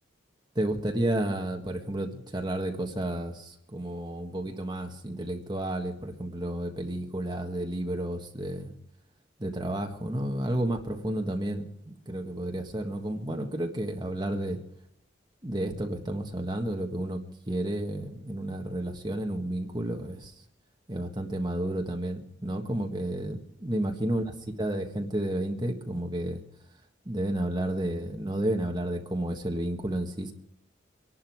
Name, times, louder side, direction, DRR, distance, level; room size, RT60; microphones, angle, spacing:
voice 1, 0.5-8.7 9.4-14.6 15.4-17.2 17.5-20.3 20.9-24.2 24.6-26.4 27.0-30.3, right 1 dB, 20° right, 3 dB, 1.5 m, -31 dB
25.0 x 11.5 x 4.7 m, 0.75 s
head